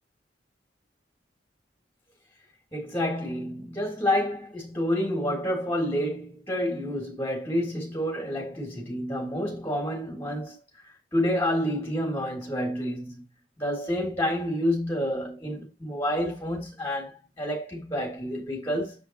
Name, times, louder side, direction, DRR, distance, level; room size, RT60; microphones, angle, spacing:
voice 1, 2.7-10.6 11.1-13.2 13.6-19.0, equal, 15° left, 3.2 m, -29 dB
7.5 x 5.1 x 4.7 m
head